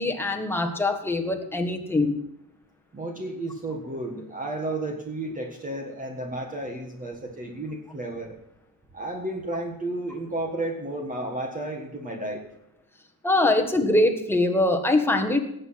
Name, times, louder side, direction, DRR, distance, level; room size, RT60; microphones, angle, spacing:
voice 1, 0.0-2.2 13.2-15.4, left 2 dB, 5° left, 4 dB, 1.4 m, -23 dB
voice 2, 2.9-8.3 8.9-12.4, right 2 dB, 20° right, 2 dB, 1.6 m, -32 dB
18.0 x 8.0 x 5.8 m, 0.80 s
cardioid pair, 155°, 35 cm